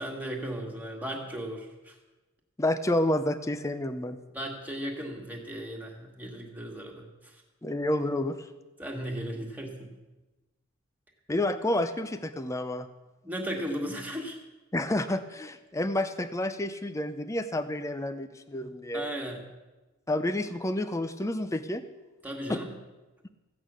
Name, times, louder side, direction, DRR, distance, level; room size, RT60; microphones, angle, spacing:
voice 1, 0.0-1.9 4.3-7.4 8.8-9.9 13.2-14.4 18.9-19.4 22.2-22.7, equal, 10° right, 0 dB, 1.8 m, -36 dB
voice 2, 2.6-4.2 7.6-8.5 11.3-12.9 14.7-19.1 20.1-21.8 22.5-22.6, left 1 dB, 15° left, 10 dB, 0.5 m, -29 dB
15.0 x 8.7 x 6.2 m, 1.1 s
head